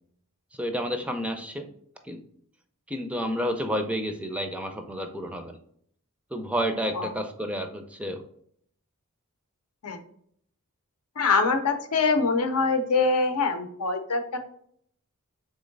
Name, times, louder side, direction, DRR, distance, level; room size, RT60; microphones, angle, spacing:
voice 1, 0.6-1.7 2.0-2.2 2.9-5.6 6.3-8.2, equal, 5° right, 6 dB, 0.4 m, -30 dB
voice 2, 11.2-14.4, left 4 dB, 85° left, 7 dB, 0.7 m, -24 dB
3.7 x 3.1 x 3.8 m, 0.65 s
head